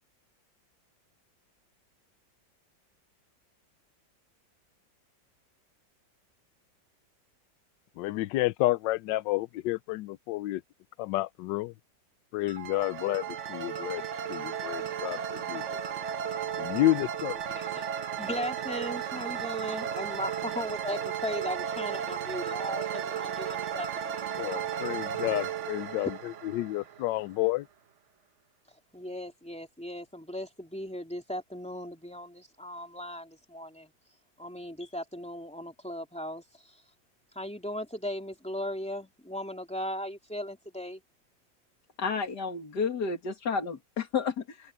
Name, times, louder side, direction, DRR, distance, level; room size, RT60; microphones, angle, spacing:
voice 1, 8.0-10.6 11.0-11.7 12.3-14.0 14.3-15.2 15.5-15.6 16.6-17.4 24.4-26.1 26.5-27.6, left 16 dB, 75° left, 1.2 m, -30 dB
sound 1, 12.4-27.3, right 8 dB, 50° right, 0.9 m, -34 dB
voice 2, 17.5-17.9 18.2-24.3 26.0-26.1 28.9-33.9 34.4-36.8 37.3-41.0, equal, 5° left, 2.8 m, -37 dB
voice 3, 42.0-44.7, left 5 dB, 60° left, 2.8 m, -31 dB
omnidirectional pair, 2.0 m